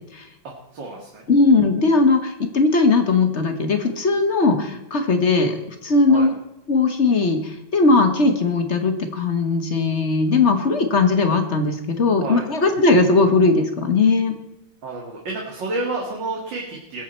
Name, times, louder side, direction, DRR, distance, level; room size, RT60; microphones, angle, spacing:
voice 1, 0.7-1.2 6.1-6.3 12.2-12.5 14.8-17.0, right 2 dB, 70° right, -2 dB, 2.7 m, -30 dB
voice 2, 1.3-6.3 6.7-14.3, left 3 dB, 40° left, 7 dB, 1.3 m, -18 dB
21.0 x 8.3 x 4.4 m, 0.91 s
omnidirectional pair, 2.1 m